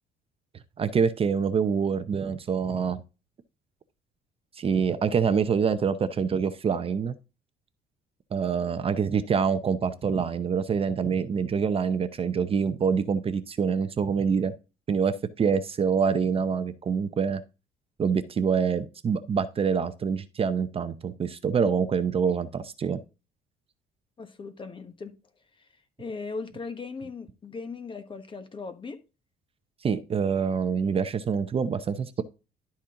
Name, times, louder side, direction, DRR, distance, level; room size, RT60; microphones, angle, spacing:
voice 1, 0.8-3.0 4.6-7.2 8.3-14.5 14.9-17.4 18.0-23.0 29.8-32.2, right 6 dB, 35° right, 0.7 m, -26 dB
voice 2, 24.2-25.1 25.6-25.7 26.0-29.0, left 4 dB, 30° left, 1.3 m, -38 dB
11.5 x 4.3 x 3.7 m
cardioid pair, 110°, 17 cm